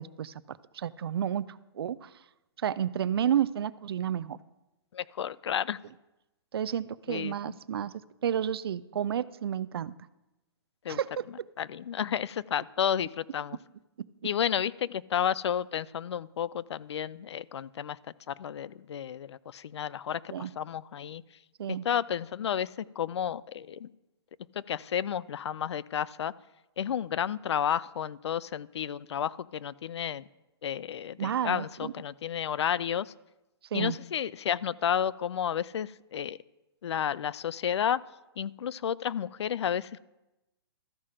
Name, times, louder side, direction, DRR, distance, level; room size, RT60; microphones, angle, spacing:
voice 1, 0.0-2.1 2.6-4.4 6.5-7.9 8.2-9.9 10.9-11.3 20.3-20.5 21.6-21.8 31.2-31.9 33.7-34.0, right 9 dB, 65° right, 17 dB, 0.4 m, -31 dB
voice 2, 4.9-5.8 7.1-7.5 10.8-11.0 11.6-13.6 14.2-18.0 18.3-21.2 21.7-23.9 24.5-26.3 26.8-30.3 30.6-33.1 33.7-36.4 36.8-38.0 38.4-40.0, left 9 dB, 85° left, 21 dB, 0.4 m, -31 dB
13.5 x 4.9 x 5.7 m, 0.97 s
hypercardioid pair, 170°, 14 cm